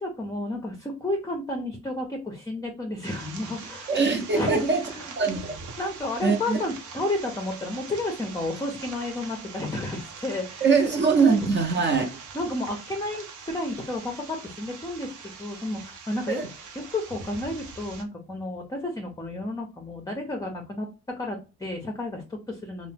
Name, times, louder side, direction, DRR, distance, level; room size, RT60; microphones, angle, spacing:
voice 1, 0.0-4.0 4.3-5.1 5.8-10.8 11.4-11.5 12.3-15.1 15.4-16.4 16.9-22.9, left 1 dB, 10° left, 0.5 m, -31 dB
sound 1, 3.0-18.0, right 5 dB, 80° right, 0.7 m, -43 dB
voice 2, 3.9-4.8 5.2-5.5 6.2-6.6 10.6-12.2 16.3-16.5, right 4 dB, 35° right, 0.6 m, -22 dB
2.7 x 2.0 x 3.3 m
cardioid pair, 90°, 30 cm